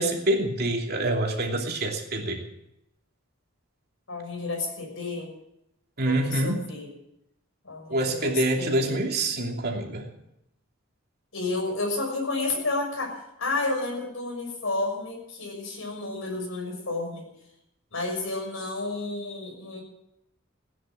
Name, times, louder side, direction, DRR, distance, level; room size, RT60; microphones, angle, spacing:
voice 1, 0.0-2.4 6.0-6.6 7.9-10.1, right 1 dB, 50° right, 1 dB, 2.8 m, -26 dB
voice 2, 4.1-5.3 6.0-6.9 7.6-9.0 11.3-17.2 17.9-19.8, left 2 dB, 70° left, 1 dB, 6.4 m, -31 dB
16.5 x 9.9 x 7.5 m, 0.81 s
head